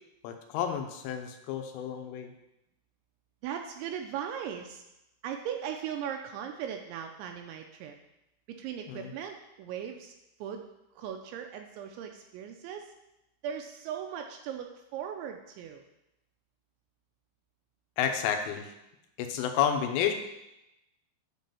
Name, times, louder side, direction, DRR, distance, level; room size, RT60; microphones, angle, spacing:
voice 1, 0.2-2.3 8.9-9.1 18.0-18.7 19.2-20.1, left 8 dB, 85° left, 6 dB, 3.4 m, -30 dB
voice 2, 3.4-4.8 5.2-8.0 8.5-10.7 11.0-12.9 13.4-15.8, right 8 dB, 80° right, 4 dB, 2.7 m, -38 dB
9.4 x 3.9 x 6.8 m, 0.90 s
omnidirectional pair, 5.6 m